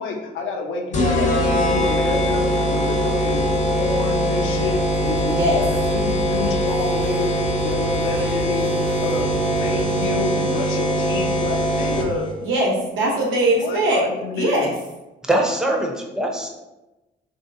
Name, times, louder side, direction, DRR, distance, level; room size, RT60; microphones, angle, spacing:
voice 1, 0.0-8.8 9.0-12.4 13.6-14.7, left 3 dB, 75° left, 2 dB, 0.6 m, -29 dB
sound 1, 0.9-12.3, equal, 35° left, 0.6 m, -22 dB
sound 2, 4.6-10.2, equal, 55° right, 0.6 m, -37 dB
voice 2, 5.3-5.6 8.1-8.3 12.4-14.0 14.3-14.7, right 1 dB, 80° right, -2 dB, 0.9 m, -21 dB
voice 3, 15.2-16.5, right 1 dB, 5° right, 0 dB, 0.5 m, -22 dB
3.0 x 2.7 x 2.6 m, 1.0 s
cardioid pair, 90°, 20 cm